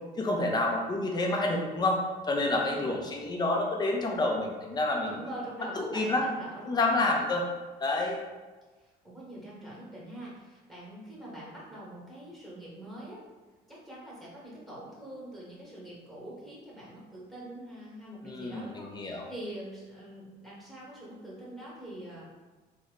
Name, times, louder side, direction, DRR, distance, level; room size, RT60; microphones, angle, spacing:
voice 1, 0.2-5.1 5.8-6.2 6.7-7.4 7.8-8.2 18.2-19.3, left 2 dB, 25° left, 0 dB, 0.6 m, -28 dB
voice 2, 2.4-2.8 4.9-7.0 8.7-13.2 13.7-22.3, right 1 dB, ahead, -6 dB, 1.2 m, -44 dB
3.0 x 2.1 x 3.7 m, 1.3 s
cardioid pair, 110°, 17 cm